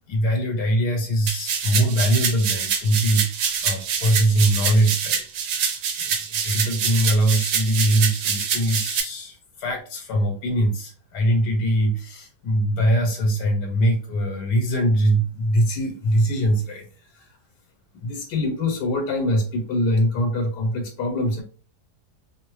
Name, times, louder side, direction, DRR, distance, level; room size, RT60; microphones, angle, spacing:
voice 1, 0.1-5.2 5.5-5.7 6.0-6.1 6.4-16.9 18.0-21.4, equal, 85° left, 3 dB, 1.2 m, -22 dB
sound 1, 1.3-9.0, right 7 dB, 75° right, 1.1 m, -25 dB
2.8 x 2.0 x 3.0 m, 0.39 s
omnidirectional pair, 1.8 m